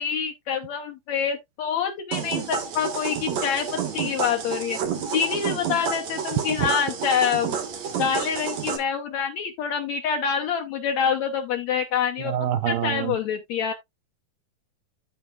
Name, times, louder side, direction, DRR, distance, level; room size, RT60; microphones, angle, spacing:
voice 1, 0.0-4.8 5.1-7.6 8.0-12.3 12.7-13.7, left 7 dB, 75° left, 1.7 m, -26 dB
sound 1, 2.1-8.8, right 7 dB, 60° right, 2.4 m, -30 dB
voice 2, 12.3-13.1, right 10 dB, 85° right, 2.4 m, -26 dB
13.0 x 4.7 x 2.4 m
omnidirectional pair, 4.1 m